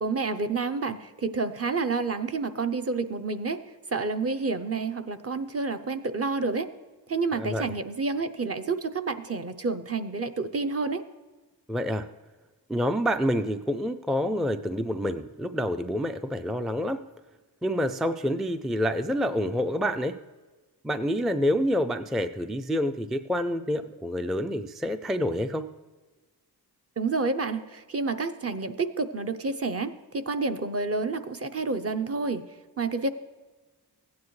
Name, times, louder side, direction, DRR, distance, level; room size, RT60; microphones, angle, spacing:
voice 1, 0.0-3.6 3.9-6.7 7.1-11.0 27.0-32.4 32.8-33.1, right 4 dB, 35° right, 8 dB, 0.7 m, -29 dB
voice 2, 7.3-7.7 11.7-12.1 12.7-17.0 17.6-20.2 20.8-25.7, equal, ahead, 8 dB, 0.3 m, -27 dB
15.5 x 9.4 x 3.2 m, 1.3 s
wide cardioid pair, 90°, 40 cm